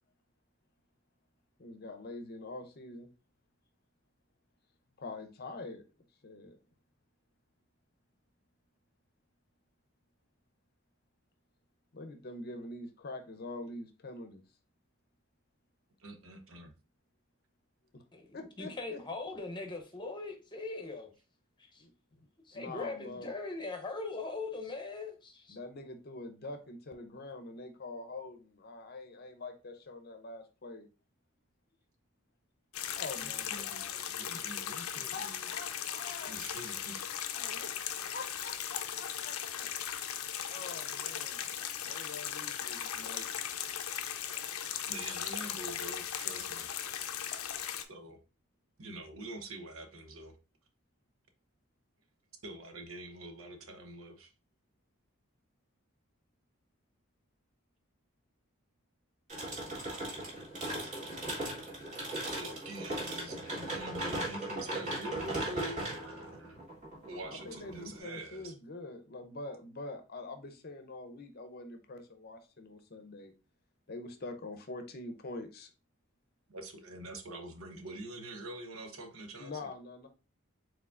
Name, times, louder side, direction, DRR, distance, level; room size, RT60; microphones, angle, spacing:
voice 1, 1.6-3.1 5.0-5.8 6.2-6.6 11.9-14.4 17.9-18.0 18.3-19.0 21.8-22.2 22.5-23.3 25.5-30.9 33.0-34.0 35.1-36.3 37.3-39.7 40.4-41.5 41.8-43.3 67.3-73.3 73.9-75.7 79.4-80.1, left 2 dB, 45° left, 0.7 m, -45 dB
voice 2, 16.0-16.7 33.2-35.5 36.3-37.0 44.9-46.7 47.9-48.2 48.8-50.4 52.4-54.3 62.3-66.6 67.1-68.5 76.5-79.7, right 1 dB, 70° right, 0.9 m, -45 dB
voice 3, 18.6-21.1 21.7-21.8 22.5-25.6, left 3 dB, 20° left, 0.8 m, -40 dB
sound 1, 32.7-47.8, left 9 dB, 80° left, 0.5 m, -38 dB
sound 2, 59.3-68.0, right 1 dB, 35° right, 2.0 m, -38 dB
4.7 x 3.8 x 2.5 m
head